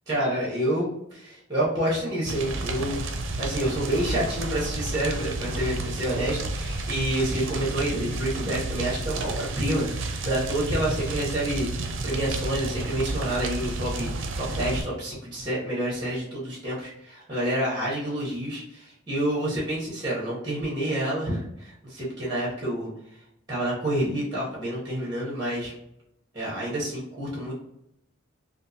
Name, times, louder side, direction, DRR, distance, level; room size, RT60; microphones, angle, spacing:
voice 1, 0.1-3.1 3.4-22.9 23.5-25.7 26.3-27.5, right 1 dB, 20° right, -6 dB, 0.9 m, -28 dB
sound 1, 2.3-14.8, right 2 dB, 70° right, 0.5 m, -31 dB
3.5 x 2.5 x 2.8 m, 0.80 s
head